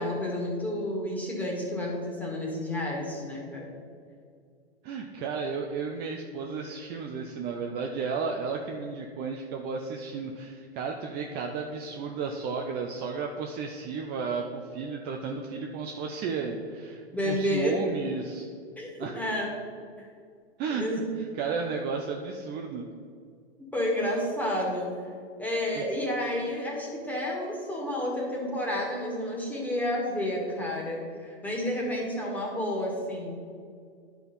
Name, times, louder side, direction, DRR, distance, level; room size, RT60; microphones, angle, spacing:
voice 1, 0.0-3.7 17.1-17.8 18.8-19.5 20.0-20.1 20.7-21.0 23.7-24.9 25.4-33.4, left 1 dB, 5° left, -2 dB, 1.9 m, -30 dB
voice 2, 4.8-18.5 19.0-19.2 20.6-20.8 21.1-22.9, right 5 dB, 30° right, 2 dB, 0.6 m, -33 dB
9.8 x 4.5 x 5.3 m, 2.2 s
hypercardioid pair, 120°, 32 cm